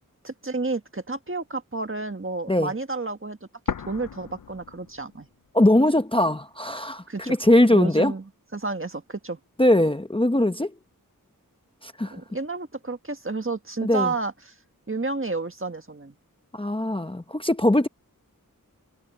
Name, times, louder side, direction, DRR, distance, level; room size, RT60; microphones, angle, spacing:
voice 1, 0.2-3.4 3.7-5.3 7.1-7.4 7.7-8.2 8.5-9.4 12.1-14.5 14.9-16.1, right 3 dB, 35° right, 1.6 m, -31 dB
sound 1, 3.7-5.6 5.9-6.0 6.7-7.7, left 7 dB, 70° left, 0.6 m, -36 dB
voice 2, 5.5-8.1 9.6-10.7 11.8-12.2 13.8-14.1 16.5-17.9, left 1 dB, 15° left, 0.9 m, -21 dB
wide cardioid pair, 55°, 34 cm